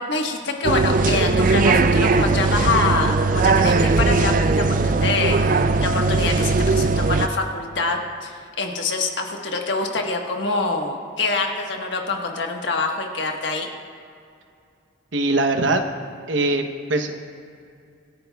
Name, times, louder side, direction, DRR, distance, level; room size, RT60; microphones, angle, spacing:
voice 1, 0.0-13.7, left 3 dB, 65° left, 2 dB, 1.4 m, -25 dB
sound 1, 0.6-7.3, right 3 dB, 40° right, 0.4 m, -19 dB
voice 2, 15.1-15.8 16.3-17.1, right 2 dB, 75° right, 7 dB, 0.9 m, -21 dB
26.0 x 10.5 x 2.3 m, 2.4 s
head